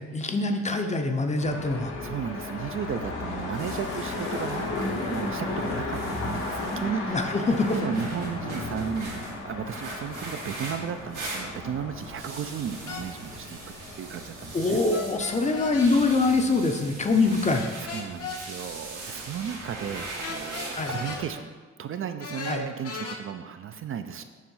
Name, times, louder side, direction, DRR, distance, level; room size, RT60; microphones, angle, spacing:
voice 1, 0.0-1.9 7.1-7.8 14.5-17.6 20.7-21.0 22.5-22.7, left 3 dB, 25° left, 5 dB, 0.6 m, -24 dB
sound 1, 1.4-16.3, left 2 dB, 90° left, 1.6 m, -35 dB
voice 2, 2.0-7.3 7.8-13.6 13.9-14.8 17.8-21.5 21.8-24.2, right 8 dB, 45° right, 8 dB, 0.4 m, -34 dB
sound 2, 3.2-21.3, right 2 dB, 85° right, 1.7 m, -41 dB
sound 3, 12.9-13.1 14.9-15.9 17.5-18.4 20.2-21.2 22.2-23.2, left 5 dB, 55° left, 0.9 m, -36 dB
7.2 x 3.1 x 5.4 m, 1.5 s
cardioid pair, 90°, 30 cm